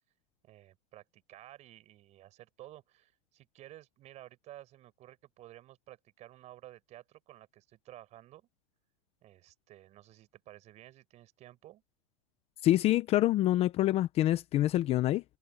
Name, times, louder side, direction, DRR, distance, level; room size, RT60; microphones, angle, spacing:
voice 1, 0.4-8.5 9.2-11.8, right 14 dB, 35° right, 5.3 m, -53 dB
voice 2, 12.6-15.2, left 14 dB, 30° left, 0.8 m, -26 dB
supercardioid pair, 135°, 20 cm